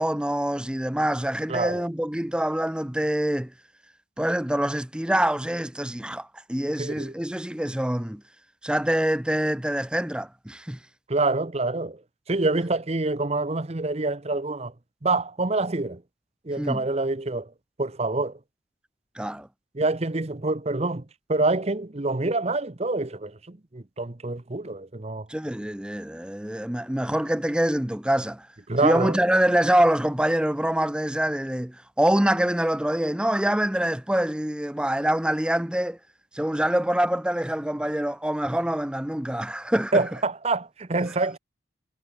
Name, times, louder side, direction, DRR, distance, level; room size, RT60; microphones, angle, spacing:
voice 1, 0.0-3.5 4.2-8.2 8.6-10.8 16.6-16.8 19.2-19.5 25.3-28.5 28.8-36.0 36.3-40.0, right 1 dB, 5° right, 0.5 m, -25 dB
voice 2, 1.5-1.8 6.8-7.1 11.1-12.0 12.3-14.7 15.0-16.0 16.4-17.5 17.8-18.4 19.7-25.3 28.7-29.2 39.9-41.4, right 2 dB, 35° right, 0.9 m, -26 dB
head